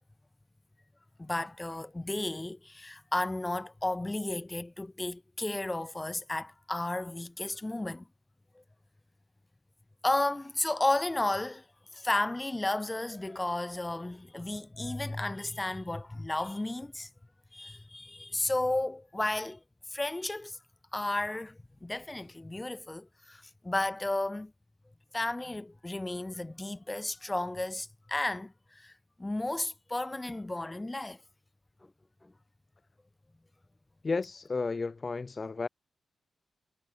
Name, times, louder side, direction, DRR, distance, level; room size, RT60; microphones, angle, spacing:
voice 1, 1.2-8.0 10.0-11.6 11.9-17.1 17.5-19.6 19.9-20.6 20.9-24.5 25.1-28.9 29.2-31.2 32.2-32.3, left 2 dB, 15° left, 1.4 m, -33 dB
voice 2, 34.0-35.7, left 4 dB, 40° left, 0.7 m, -32 dB
cardioid pair, 80°, 0 cm